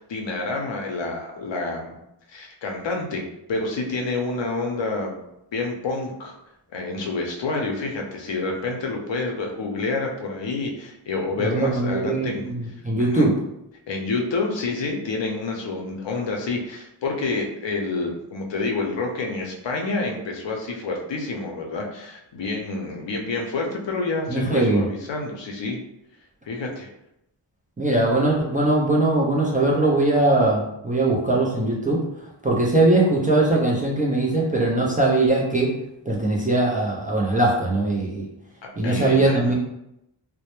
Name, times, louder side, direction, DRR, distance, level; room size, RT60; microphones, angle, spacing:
voice 1, 0.0-2.0 2.3-3.2 3.5-5.2 5.5-6.4 6.7-12.5 13.0-13.3 13.9-25.8 26.5-26.9 38.8-39.5, left 3 dB, 70° left, 1 dB, 0.6 m, -28 dB
voice 2, 11.4-13.3 24.3-24.8 27.8-32.0 32.4-35.7 36.1-38.3 38.8-39.5, right 2 dB, 20° right, -3 dB, 0.4 m, -21 dB
2.1 x 2.0 x 2.9 m, 0.83 s
wide cardioid pair, 100°, 47 cm